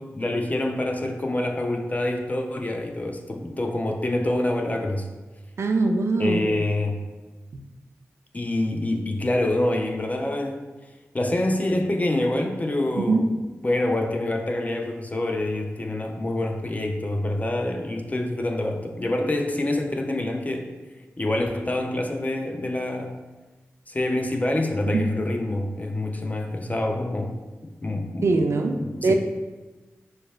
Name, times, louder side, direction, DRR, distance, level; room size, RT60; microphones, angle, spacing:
voice 1, 0.0-5.1 6.2-7.0 8.3-10.6 11.1-20.7 21.2-23.1 23.9-27.4 27.6-28.3 28.7-29.1, left 1 dB, 30° left, 4 dB, 0.4 m, -26 dB
voice 2, 5.6-6.6 13.0-13.2 24.9-25.0 28.2-29.1, right 3 dB, 65° right, 4 dB, 0.4 m, -22 dB
6.4 x 2.2 x 2.3 m, 1.2 s
cardioid pair, 45°, 5 cm